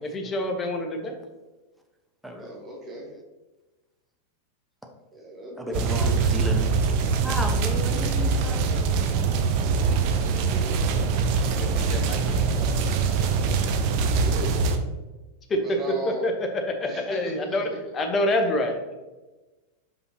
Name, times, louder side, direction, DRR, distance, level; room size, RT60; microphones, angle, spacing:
voice 1, 0.0-1.2 11.4-12.8 15.5-15.8 16.0-19.1, left 1 dB, 25° left, 4 dB, 1.0 m, -28 dB
voice 2, 2.4-3.1 5.1-6.2 13.9-14.7 15.6-16.3 16.8-17.6 17.8-17.9, right 1 dB, 25° right, -1 dB, 1.5 m, -36 dB
voice 3, 5.6-6.7 7.2-8.7, equal, ahead, 1 dB, 1.0 m, -33 dB
sound 1, 5.7-14.8, right 5 dB, 45° right, 0.6 m, -23 dB
6.2 x 5.4 x 2.8 m, 1.1 s
figure-of-eight pair, 90°, 0 cm